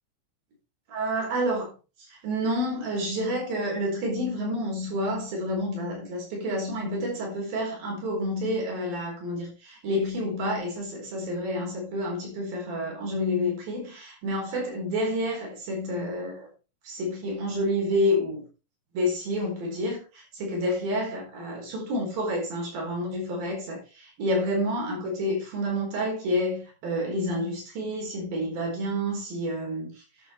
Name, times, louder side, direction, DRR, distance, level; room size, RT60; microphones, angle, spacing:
voice 1, 0.9-1.7 2.0-16.5 16.9-18.4 18.9-30.0, equal, 85° right, 6.1 m, -29 dB
11.0 x 7.6 x 4.5 m
omnidirectional pair, 4.0 m